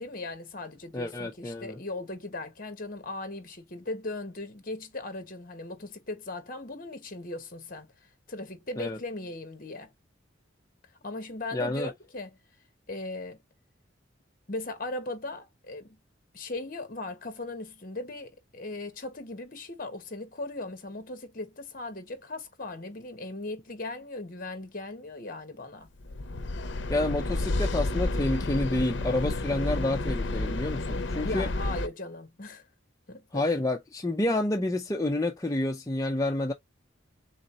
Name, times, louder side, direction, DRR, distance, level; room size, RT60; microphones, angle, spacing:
voice 1, 0.0-7.9 8.3-9.9 11.0-12.4 12.9-13.4 14.5-16.0 16.3-25.9 31.2-32.6 33.1-33.4, left 2 dB, 50° left, 1.3 m, -38 dB
voice 2, 0.9-1.8 8.8-9.0 11.5-11.9 26.9-31.5 33.3-36.5, left 1 dB, 20° left, 0.5 m, -29 dB
sound 1, 26.0-31.9, left 2 dB, 70° left, 0.7 m, -30 dB
3.8 x 3.8 x 2.8 m
head